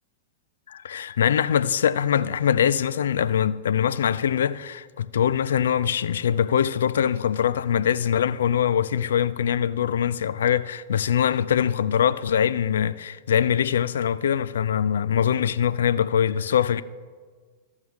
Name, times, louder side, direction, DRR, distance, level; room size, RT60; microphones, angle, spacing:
voice 1, 0.7-16.8, left 9 dB, 75° left, 0.3 m, -23 dB
14.5 x 6.3 x 3.6 m
hypercardioid pair, 110°, 0 cm